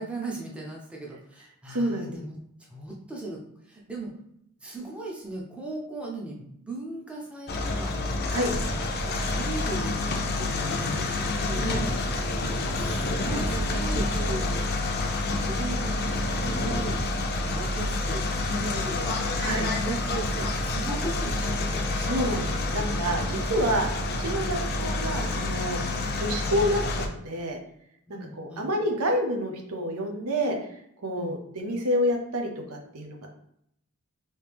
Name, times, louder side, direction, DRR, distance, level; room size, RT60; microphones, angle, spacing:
voice 1, 0.0-2.4 2.7-4.2 4.6-8.7 9.0-11.6 12.7-14.7 15.4-17.1 17.4-21.9 28.1-28.7 31.2-31.4, right 2 dB, 5° right, -3 dB, 0.6 m, -37 dB
voice 2, 1.7-2.2 8.3-8.5 11.6-11.8 19.4-19.7 21.9-23.9 24.2-25.8 26.2-27.6 28.1-30.6 31.0-33.2, equal, 75° right, 2 dB, 0.7 m, -28 dB
sound 1, 7.5-27.1, left 2 dB, 45° left, 0.5 m, -28 dB
3.2 x 2.8 x 3.4 m, 0.75 s
head